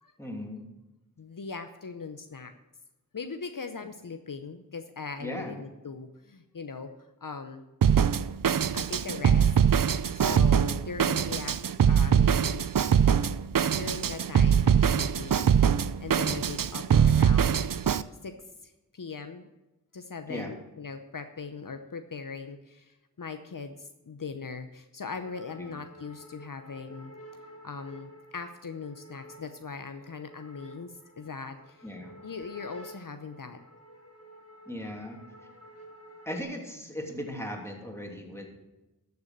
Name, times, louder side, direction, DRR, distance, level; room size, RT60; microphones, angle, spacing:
voice 1, 0.2-0.7 5.2-5.6 20.3-20.5 25.6-25.8 31.8-32.2 34.7-35.2 36.2-38.5, left 1 dB, 5° left, 1 dB, 2.8 m, -37 dB
voice 2, 1.2-2.6 3.1-6.9 7.2-7.6 8.7-9.5 10.1-11.6 11.8-12.7 13.7-15.5 16.0-17.7 18.2-18.3 18.6-19.5 19.9-27.1 27.6-31.8 32.2-33.6, left 5 dB, 65° left, 8 dB, 0.8 m, -40 dB
Drum kit, 7.8-18.0, right 8 dB, 65° right, 0.5 m, -23 dB
sound 1, 25.1-36.4, equal, 40° left, 2.7 m, -51 dB
13.0 x 7.0 x 6.6 m, 1.0 s
wide cardioid pair, 45°, 35 cm